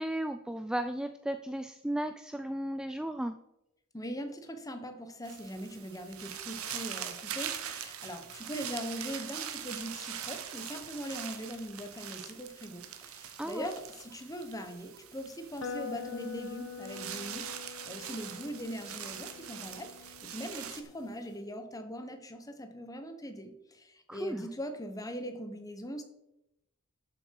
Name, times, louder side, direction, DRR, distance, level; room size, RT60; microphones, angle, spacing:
voice 1, 0.0-3.3 13.4-13.7 24.1-24.5, right 1 dB, 5° right, 9 dB, 0.3 m, -35 dB
voice 2, 3.9-26.0, equal, 15° left, 7 dB, 1.2 m, -41 dB
sound 1, 5.2-20.8, right 9 dB, 80° right, 1.1 m, -42 dB
sound 2, 15.6-21.4, left 6 dB, 90° left, 1.5 m, -45 dB
11.5 x 7.4 x 4.7 m, 0.88 s
head